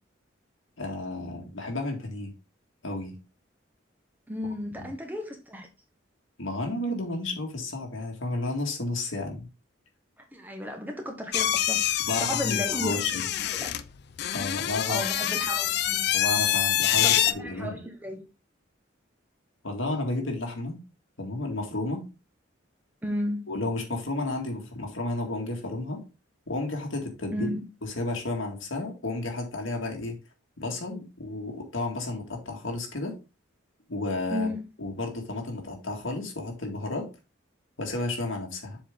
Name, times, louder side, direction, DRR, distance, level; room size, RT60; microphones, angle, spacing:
voice 1, 0.8-2.3 2.8-3.1 4.8-4.9 6.4-9.5 12.1-13.3 14.3-15.0 16.1-17.8 19.6-20.8 21.2-22.0 23.5-26.0 26.5-30.2 30.6-33.1 33.9-34.5 34.8-37.1 37.8-38.8, left 2 dB, 90° left, 2 dB, 1.9 m, -32 dB
voice 2, 4.3-5.7 10.2-13.2 13.5-13.7 14.9-16.1 17.0-18.2 23.0-23.4 27.3-27.6 34.3-34.6, equal, 10° right, 3 dB, 1.1 m, -34 dB
sound 1, 11.3-17.3, left 12 dB, 55° left, 0.4 m, -26 dB
7.2 x 4.5 x 3.6 m, 0.30 s
head